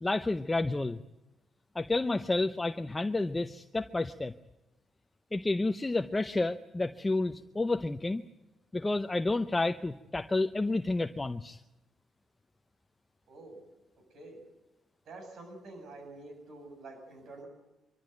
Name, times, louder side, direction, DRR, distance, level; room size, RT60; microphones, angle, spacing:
voice 1, 0.0-1.0 1.7-4.3 5.3-8.2 8.7-11.6, left 2 dB, 20° left, 9 dB, 0.7 m, -30 dB
voice 2, 13.3-13.6 14.1-14.4 15.0-17.5, right 2 dB, 65° right, 4 dB, 7.8 m, -47 dB
24.5 x 13.5 x 9.3 m, 0.99 s
cardioid pair, 90°, 0 cm